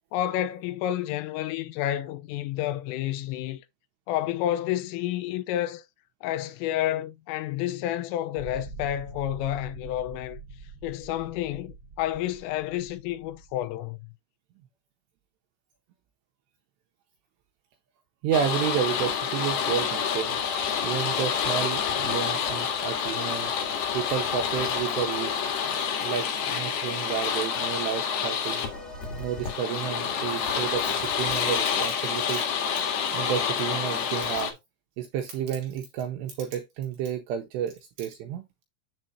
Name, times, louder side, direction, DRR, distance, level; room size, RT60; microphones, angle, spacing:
voice 1, 0.1-3.7 4.1-5.8 6.2-10.4 10.8-14.1, left 12 dB, 85° left, 3.4 m, -30 dB
sound 1, 8.3-13.6, right 3 dB, 40° right, 1.5 m, -45 dB
voice 2, 18.2-20.4 20.8-23.5 23.9-28.6 29.2-32.5 33.1-34.6 35.0-38.6, right 9 dB, 85° right, 2.5 m, -31 dB
sound 2, 18.3-34.5, left 7 dB, 60° left, 3.3 m, -28 dB
sound 3, 26.9-32.2, left 1 dB, ahead, 0.9 m, -48 dB
7.6 x 7.5 x 2.7 m
omnidirectional pair, 5.8 m